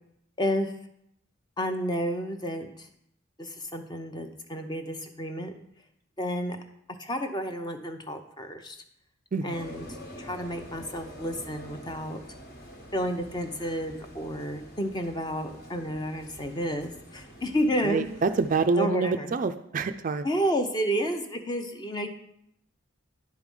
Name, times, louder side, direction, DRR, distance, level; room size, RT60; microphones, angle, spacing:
voice 1, 0.4-0.7 1.6-2.9 3.4-5.5 6.2-6.6 7.0-8.8 9.4-9.9 10.2-12.2 12.9-18.1 18.7-19.4 20.2-22.1, equal, 20° left, 6 dB, 0.6 m, -31 dB
sound 1, 9.5-18.7, equal, 45° left, 1.3 m, -46 dB
voice 2, 17.8-20.3, right 4 dB, 40° right, 9 dB, 0.3 m, -26 dB
10.5 x 4.7 x 5.4 m, 0.75 s
head